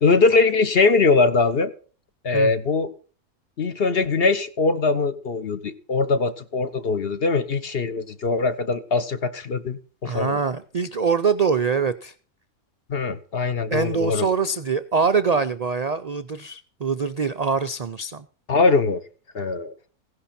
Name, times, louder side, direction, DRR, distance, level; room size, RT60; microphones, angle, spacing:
voice 1, 0.0-1.7 2.2-2.9 3.6-10.4 12.9-14.3 18.5-19.0 19.3-19.7, left 4 dB, 45° left, 12 dB, 1.0 m, -21 dB
voice 2, 10.0-12.1 13.7-18.3, right 5 dB, 70° right, 10 dB, 0.3 m, -24 dB
16.0 x 11.0 x 4.3 m, 0.40 s
omnidirectional pair, 1.6 m